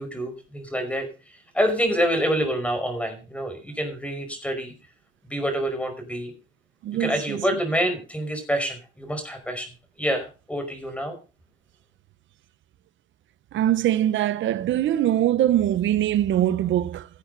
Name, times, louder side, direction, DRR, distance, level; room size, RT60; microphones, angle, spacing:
voice 1, 0.0-4.7 5.2-6.3 7.0-9.7 10.0-11.2, equal, 5° left, 5.0 m, -27 dB
voice 2, 6.8-7.4 13.5-17.1, right 12 dB, 75° right, 0.9 m, -22 dB
17.0 x 8.4 x 4.0 m
cardioid pair, 90°, 20 cm